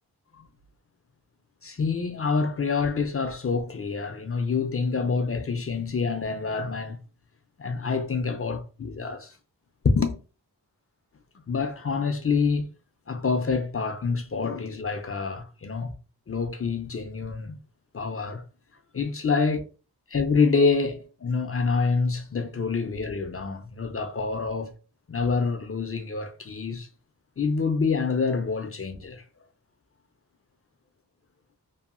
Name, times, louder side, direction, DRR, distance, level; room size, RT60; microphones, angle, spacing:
voice 1, 1.6-7.0 7.6-9.4 9.8-10.2 11.5-12.7 13.1-15.9 16.3-17.6 17.9-18.4 18.9-19.6 20.1-24.8 25.1-26.9 27.4-29.2, left 4 dB, 35° left, 0.4 m, -27 dB
2.7 x 2.4 x 2.4 m
wide cardioid pair, 50°, 41 cm